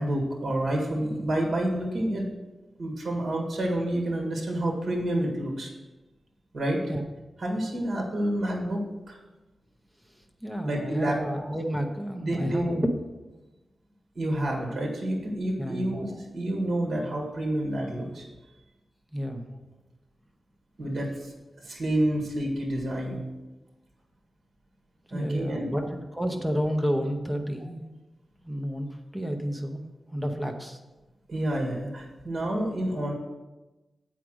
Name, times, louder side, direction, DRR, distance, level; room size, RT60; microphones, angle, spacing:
voice 1, 0.0-2.3 2.8-5.7 6.5-6.8 7.4-9.2 10.6-11.4 12.2-12.8 14.2-18.3 20.8-23.2 25.1-25.8 26.3-26.4 31.3-33.1, right 1 dB, 45° right, 0 dB, 1.7 m, -29 dB
voice 2, 10.4-12.9 15.6-15.9 19.1-19.5 25.1-27.9 28.4-29.8 30.1-30.8, equal, 5° right, 4 dB, 0.8 m, -30 dB
8.2 x 4.9 x 6.2 m, 1.1 s
wide cardioid pair, 145°, 0 cm